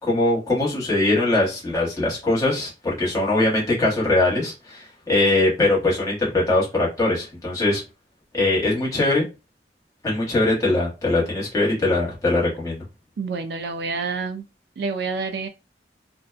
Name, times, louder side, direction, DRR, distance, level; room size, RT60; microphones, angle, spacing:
voice 1, 0.0-7.8 8.3-9.3 10.0-12.8, left 2 dB, 20° left, 1.1 m, -21 dB
voice 2, 13.2-14.4 14.8-15.5, right 4 dB, 65° right, 0.4 m, -28 dB
2.5 x 2.2 x 2.4 m
head